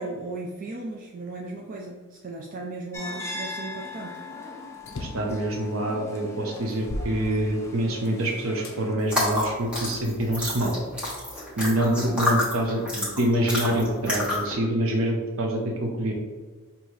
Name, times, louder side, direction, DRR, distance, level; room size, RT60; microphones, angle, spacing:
voice 1, 0.0-4.2 12.1-12.2, right 2 dB, 40° right, 0 dB, 0.4 m, -36 dB
sound 1, 2.9-8.9, left 2 dB, 15° left, 0.6 m, -40 dB
sound 2, 4.9-5.4 6.0-6.1 6.6-8.0 8.6-8.8 9.5-10.6, left 1 dB, 70° left, 0.5 m, -37 dB
voice 2, 5.0-10.8 11.6-16.1, right 1 dB, 90° right, 1 dB, 0.6 m, -26 dB
sound 3, 9.0-14.5, left 1 dB, 5° right, 1.3 m, -29 dB
5.4 x 2.8 x 3.1 m, 1.4 s
head